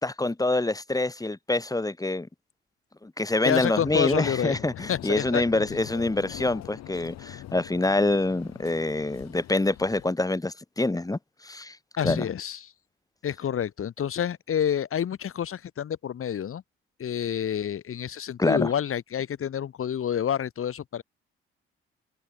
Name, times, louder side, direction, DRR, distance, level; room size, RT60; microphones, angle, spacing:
voice 1, 0.0-2.3 3.0-11.8 12.0-12.3 18.4-18.7, left 2 dB, 10° left, 2.0 m, -26 dB
voice 2, 3.4-4.6 4.9-5.4 12.0-12.7 13.2-16.6 17.0-21.0, left 9 dB, 50° left, 2.1 m, -28 dB
sound 1, 3.8-10.1, left 13 dB, 65° left, 5.9 m, -42 dB
hypercardioid pair, 50°, 29 cm